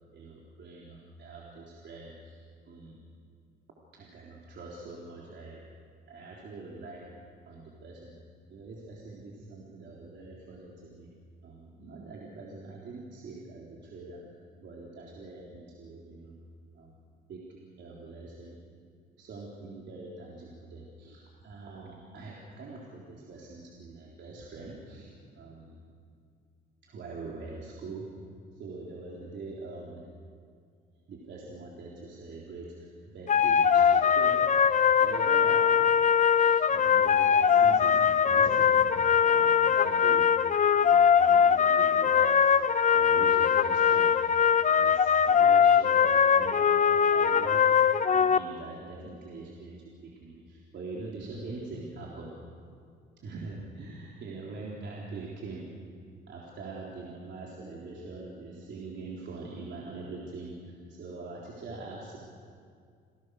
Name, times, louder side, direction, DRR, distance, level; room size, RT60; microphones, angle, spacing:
voice 1, 0.1-2.4 2.7-3.0 3.9-5.6 6.1-7.1 7.4-8.1 8.5-11.1 11.4-14.2 14.6-16.4 16.7-16.9 17.3-18.6 19.2-25.9 26.8-28.1 28.5-30.0 31.1-35.9 36.3-38.9 39.2-40.3 40.8-42.5 42.9-44.1 44.7-47.7 48.1-49.8 50.0-52.3 53.2-55.7 56.3-62.2, right 3 dB, 65° right, -3 dB, 3.8 m, -43 dB
sound 1, 33.3-48.4, left 7 dB, 40° left, 0.8 m, -22 dB
28.5 x 19.0 x 6.5 m, 2.2 s
cardioid pair, 90°, 20 cm